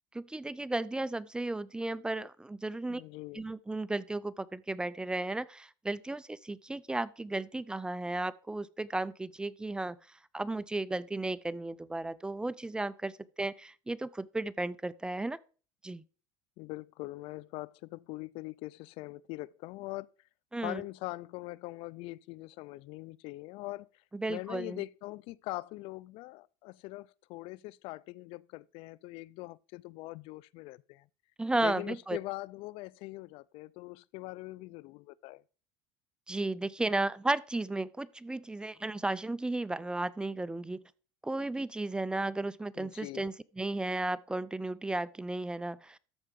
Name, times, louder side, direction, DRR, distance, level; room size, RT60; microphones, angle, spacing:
voice 1, 0.1-3.0 3.3-15.4 15.8-16.0 20.5-20.8 24.1-24.8 31.4-32.2 36.3-40.8 41.2-46.0, right 2 dB, 10° right, 0.4 m, -34 dB
voice 2, 2.9-3.4 16.6-20.1 20.6-24.0 24.3-31.1 31.6-35.4 42.8-43.3, left 20 dB, 65° left, 0.3 m, -42 dB
13.0 x 4.6 x 5.2 m
supercardioid pair, 110°, 10 cm